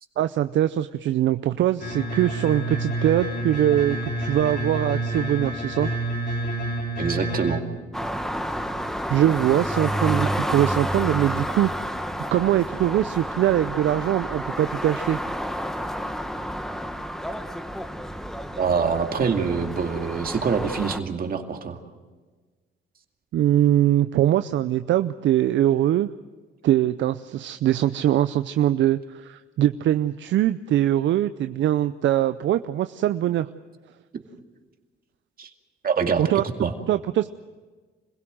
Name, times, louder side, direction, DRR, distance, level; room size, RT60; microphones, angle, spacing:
voice 1, 0.2-5.9 9.1-11.7 12.3-15.2 23.3-26.1 26.6-33.5 36.2-36.4 36.9-37.3, right 12 dB, 70° right, 11 dB, 0.6 m, -22 dB
sound 1, 1.8-7.6, right 1 dB, 50° left, 3.8 m, -28 dB
voice 2, 7.0-7.6 18.6-21.8 35.4-35.5 35.8-36.7, right 6 dB, 50° right, 4 dB, 2.3 m, -25 dB
sound 2, 7.9-21.0, equal, ahead, 1.4 m, -30 dB
26.5 x 16.5 x 7.7 m, 1.4 s
cardioid pair, 90°, 20 cm